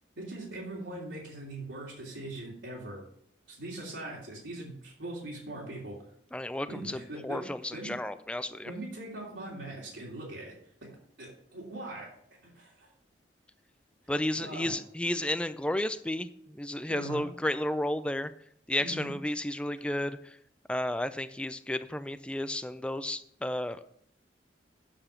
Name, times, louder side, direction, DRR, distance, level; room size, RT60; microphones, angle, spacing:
voice 1, 0.2-3.0 3.5-5.9 6.7-7.4 7.7-7.9 8.6-10.5 11.2-12.1 12.5-12.9 14.4-14.7 16.9-17.2 18.8-19.1, right 2 dB, 90° right, -4 dB, 3.0 m, -41 dB
voice 2, 6.3-7.0 7.2-8.7 14.1-18.3 18.7-20.4 20.7-23.9, left 1 dB, 5° left, 12 dB, 0.3 m, -32 dB
8.9 x 6.6 x 5.8 m, 0.66 s
head